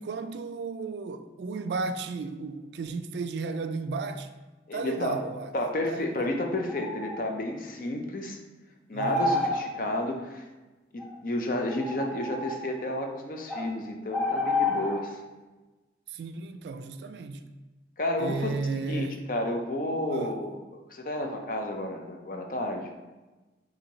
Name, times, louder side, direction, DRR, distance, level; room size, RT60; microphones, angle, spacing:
voice 1, 0.0-4.3 4.7-5.5 5.9-6.3 8.9-9.5 16.1-17.5 18.2-19.2 20.1-20.4, right 4 dB, 75° right, 0.3 m, -34 dB
voice 2, 4.7-5.2 5.5-8.4 8.9-10.4 10.9-15.2 18.0-18.5 18.9-20.6 20.9-22.9, left 1 dB, 50° left, 0.5 m, -31 dB
sound 1, 6.5-7.2 9.0-9.6 11.0-11.1 11.7-12.6 13.5-13.6 14.1-15.0, left 2 dB, ahead, 0.6 m, -29 dB
4.5 x 2.7 x 3.9 m
head